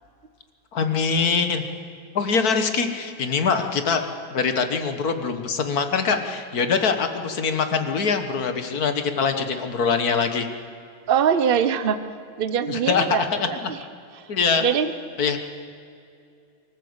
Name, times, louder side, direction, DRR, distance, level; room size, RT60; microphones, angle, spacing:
voice 1, 0.7-1.6 2.2-4.0 4.3-10.5 12.7-13.0 13.3-13.5 14.3-14.6 15.2-15.4, left 5 dB, 50° left, 8 dB, 1.6 m, -23 dB
voice 2, 11.1-12.0 12.4-13.8 14.2-14.3 14.6-14.9, right 7 dB, 90° right, 11 dB, 0.5 m, -23 dB
24.5 x 14.0 x 8.0 m, 2.5 s
omnidirectional pair, 2.2 m